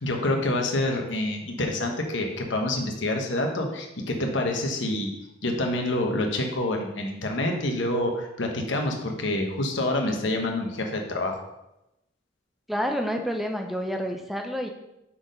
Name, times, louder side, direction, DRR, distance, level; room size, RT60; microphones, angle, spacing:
voice 1, 0.0-5.1 5.4-11.4, left 1 dB, 70° left, 2 dB, 1.1 m, -27 dB
voice 2, 12.7-14.7, equal, ahead, 3 dB, 0.6 m, -29 dB
5.9 x 4.3 x 5.1 m, 0.90 s
head